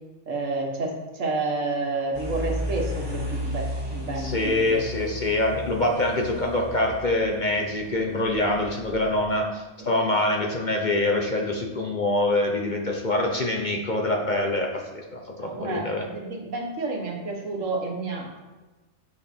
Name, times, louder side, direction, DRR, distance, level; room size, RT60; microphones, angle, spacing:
voice 1, 0.3-4.8 9.8-9.9 15.4-18.4, right 3 dB, 70° right, 1 dB, 1.7 m, -30 dB
sound 1, 2.1-9.2, left 1 dB, 20° right, 1.3 m, -34 dB
voice 2, 4.2-16.1, left 2 dB, 40° left, 1 dB, 0.9 m, -25 dB
8.7 x 6.6 x 4.4 m, 1.2 s
omnidirectional pair, 1.4 m